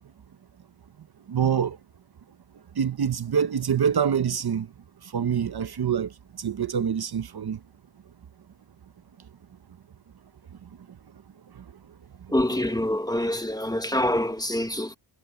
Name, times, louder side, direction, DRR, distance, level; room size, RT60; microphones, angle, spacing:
voice 1, 1.3-1.8 2.7-4.7 5.0-7.6 10.6-11.0 11.5-11.6 12.2-12.3, right 8 dB, 50° right, 0.8 m, -26 dB
voice 2, 12.3-15.0, left 1 dB, 10° left, 1.1 m, -26 dB
wide cardioid pair, 155°, 47 cm